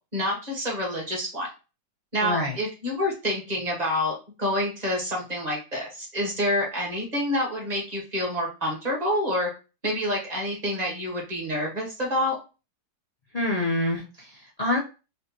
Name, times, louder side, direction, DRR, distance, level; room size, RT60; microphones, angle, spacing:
voice 1, 0.1-1.5 2.1-9.5 9.8-12.4, left 1 dB, 25° right, -2 dB, 1.5 m, -27 dB
voice 2, 2.2-2.6 13.3-14.8, left 1 dB, 65° left, -3 dB, 0.3 m, -26 dB
4.2 x 3.3 x 2.9 m, 0.31 s
omnidirectional pair, 1.9 m